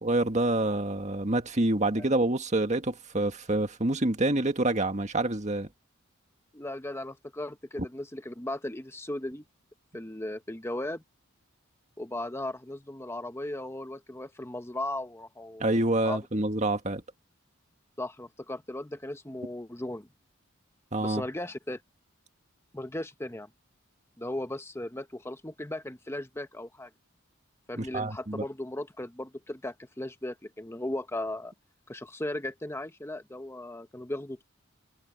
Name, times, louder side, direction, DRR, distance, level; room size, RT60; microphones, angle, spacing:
voice 1, 0.0-5.7 15.6-17.0 20.9-21.3 27.8-28.4, right 2 dB, 35° right, 1.8 m, -27 dB
voice 2, 6.5-9.4 9.9-11.0 12.0-15.8 16.0-16.2 18.0-20.1 21.0-21.8 22.7-23.5 24.2-26.9 27.7-31.5 31.9-34.4, left 1 dB, 10° left, 1.0 m, -37 dB
head